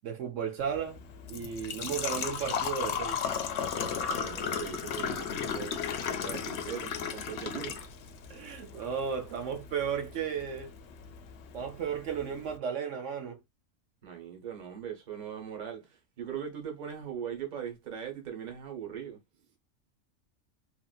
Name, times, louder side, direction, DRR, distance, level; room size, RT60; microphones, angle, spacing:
voice 1, 0.0-1.0 1.3-3.2 6.3-6.4 8.3-10.7 11.5-13.4, right 7 dB, 70° right, 1.0 m, -34 dB
Engine / Trickle dribble / Fill (with liquid), 0.6-12.6, left 7 dB, 65° left, 0.7 m, -36 dB
voice 2, 4.1-5.8 6.2-7.8 14.0-19.2, right 8 dB, 40° right, 0.8 m, -40 dB
2.9 x 2.5 x 2.3 m
omnidirectional pair, 1.4 m